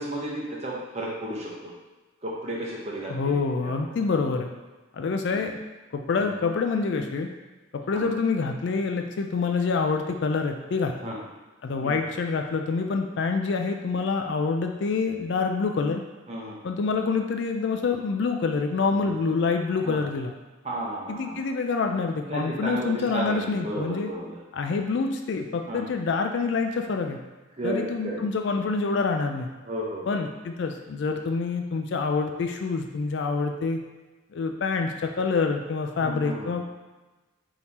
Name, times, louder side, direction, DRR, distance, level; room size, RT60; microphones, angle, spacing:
voice 1, 0.0-1.7 2.2-3.3 3.6-4.1 5.0-5.4 6.2-6.3 7.9-8.0 11.0-11.2 11.7-12.0 16.3-16.6 19.0-19.2 19.8-20.0 20.6-21.4 22.2-24.4 25.7-25.9 27.6-28.2 29.6-30.2 36.0-36.5, right 1 dB, 30° right, -4 dB, 0.8 m, -33 dB
voice 2, 3.1-4.5 4.9-5.6 5.9-7.3 7.9-11.1 11.6-16.0 16.6-20.3 21.1-24.1 24.6-27.2 27.6-29.5 30.1-33.8 34.3-36.7, left 4 dB, 55° left, 4 dB, 0.3 m, -26 dB
3.6 x 2.9 x 4.1 m, 1.2 s
head